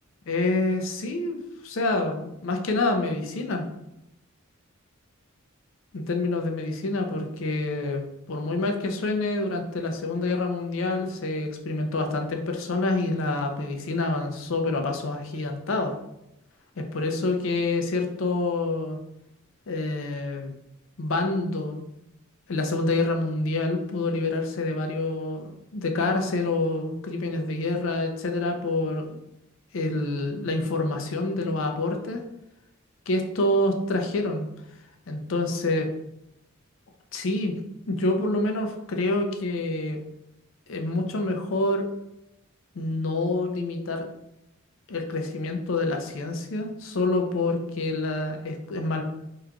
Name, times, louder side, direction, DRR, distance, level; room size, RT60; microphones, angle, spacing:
voice 1, 0.3-1.4 1.6-3.7 5.9-16.0 16.8-19.0 19.7-20.5 21.0-21.8 22.5-29.2 29.7-32.2 33.1-34.5 35.1-35.9 37.1-37.5 37.9-40.0 40.7-41.9 42.7-44.1 44.9-49.0, left 2 dB, 70° left, 4 dB, 0.5 m, -27 dB
3.6 x 3.1 x 2.2 m, 0.86 s
head